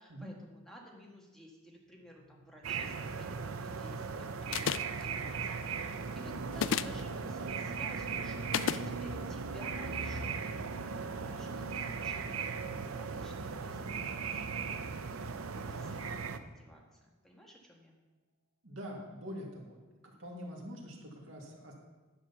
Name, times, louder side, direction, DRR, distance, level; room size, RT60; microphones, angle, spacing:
voice 1, 0.0-12.4 12.8-14.9 15.5-17.9, equal, ahead, -2 dB, 1.6 m, -54 dB
sound 1, 1.8-16.7, right 1 dB, 45° right, 1.1 m, -57 dB
sound 2, 2.6-16.4, right 5 dB, 85° right, 0.7 m, -38 dB
sound 3, 4.5-5.0 6.5-7.0 8.5-8.8, left 8 dB, 65° left, 0.3 m, -31 dB
voice 2, 18.6-19.8 20.0-21.7, equal, 65° right, -1 dB, 2.3 m, -45 dB
10.5 x 6.3 x 7.0 m, 1.2 s
head